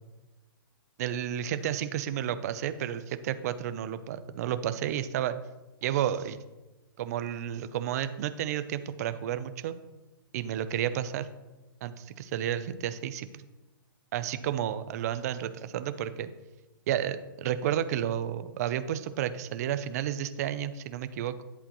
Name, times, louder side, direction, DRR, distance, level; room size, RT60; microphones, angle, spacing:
voice 1, 1.0-5.4 5.8-6.4 7.0-9.7 10.3-11.3 11.8-13.3 14.1-16.3 16.9-21.4, right 10 dB, 40° right, 12 dB, 0.6 m, -31 dB
10.5 x 8.1 x 3.1 m, 1.1 s
hypercardioid pair, 155°, 12 cm